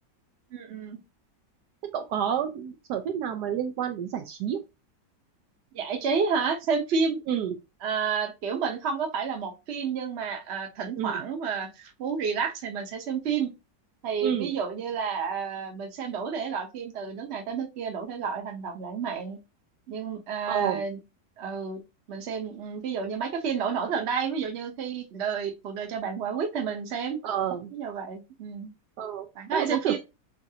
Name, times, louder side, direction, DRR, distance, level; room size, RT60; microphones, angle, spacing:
voice 1, 0.5-1.0 5.7-7.2 7.8-13.5 14.0-19.4 19.9-21.0 21.4-21.8 22.1-27.2 27.7-28.7 29.3-30.0, right 6 dB, 45° right, 4 dB, 1.0 m, -30 dB
voice 2, 1.8-4.6 7.3-7.5 11.0-11.1 14.2-14.5 20.5-20.8 27.2-27.7 29.0-29.3 29.5-30.0, right 9 dB, 75° right, 6 dB, 1.1 m, -29 dB
7.3 x 2.6 x 2.8 m, 0.26 s
omnidirectional pair, 1.9 m